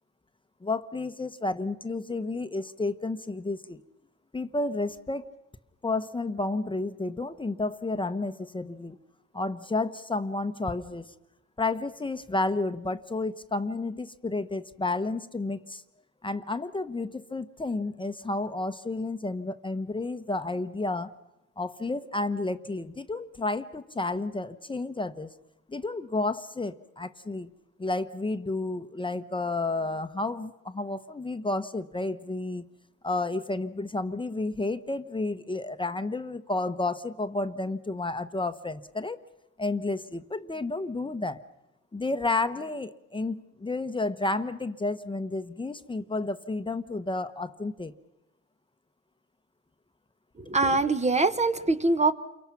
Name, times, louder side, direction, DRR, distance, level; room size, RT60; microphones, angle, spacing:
voice 1, 0.6-3.8 4.3-5.3 5.8-9.0 9.3-11.1 11.6-15.8 16.2-21.1 21.6-25.3 25.7-27.5 27.8-32.6 33.0-39.2 39.6-41.4 41.9-47.9, left 2 dB, 15° left, 10 dB, 0.9 m, -31 dB
voice 2, 50.4-52.1, right 3 dB, 20° right, 10 dB, 1.0 m, -23 dB
29.0 x 23.5 x 5.9 m, 0.96 s
cardioid pair, 90°, 30 cm